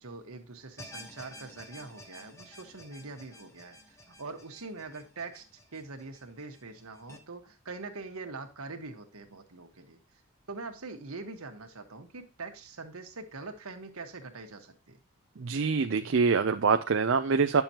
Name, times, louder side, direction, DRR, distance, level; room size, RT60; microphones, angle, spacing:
voice 1, 0.0-10.0 10.5-15.0, right 3 dB, 90° right, 1.4 m, -43 dB
sound 1, 0.8-7.2, left 1 dB, 15° left, 1.1 m, -51 dB
voice 2, 15.4-17.6, right 5 dB, 60° right, 0.5 m, -25 dB
10.5 x 7.0 x 2.9 m
head